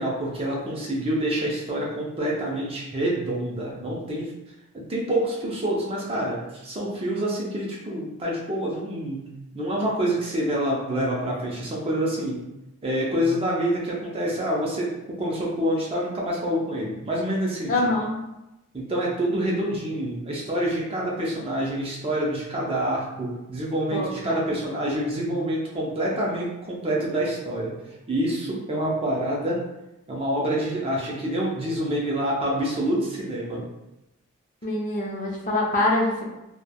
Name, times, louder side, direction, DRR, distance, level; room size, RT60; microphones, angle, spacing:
voice 1, 0.0-4.3 4.7-9.2 9.5-12.4 12.8-17.9 18.7-27.7 28.1-29.6 30.1-33.6, right 1 dB, 25° right, -4 dB, 0.5 m, -27 dB
voice 2, 17.7-18.2 23.9-24.4 34.6-36.3, left 2 dB, 35° left, -2 dB, 0.5 m, -25 dB
3.1 x 2.1 x 2.2 m, 0.93 s
head